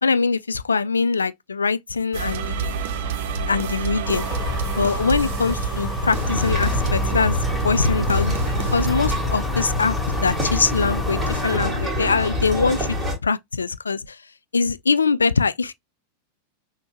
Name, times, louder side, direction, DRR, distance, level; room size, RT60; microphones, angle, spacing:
voice 1, 0.0-2.7 3.5-4.3 4.7-7.4 7.6-8.4 8.7-12.9 13.2-14.2 14.5-15.7, left 4 dB, 75° left, 0.3 m, -23 dB
sound 1, 2.1-9.1, right 5 dB, 50° right, 0.7 m, -28 dB
sound 2, 4.0-11.6, left 4 dB, 10° left, 0.5 m, -31 dB
sound 3, 6.1-13.1, left 1 dB, 10° right, 1.9 m, -26 dB
6.1 x 2.1 x 3.0 m
figure-of-eight pair, 90°, 0 cm